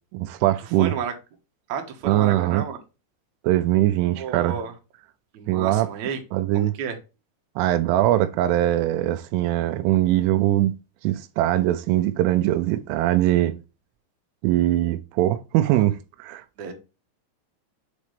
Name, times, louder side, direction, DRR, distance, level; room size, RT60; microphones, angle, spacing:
voice 1, 0.1-0.9 2.1-2.6 3.4-4.6 5.5-5.9 6.3-6.7 7.6-10.8 11.0-13.6 14.4-16.4, right 14 dB, 85° right, 3.1 m, -21 dB
voice 2, 0.8-1.1 1.7-2.8 4.2-4.7 5.3-6.2 6.5-7.0 15.6-15.8 16.6-16.7, right 6 dB, 70° right, 1.8 m, -31 dB
8.3 x 4.2 x 3.3 m
omnidirectional pair, 5.5 m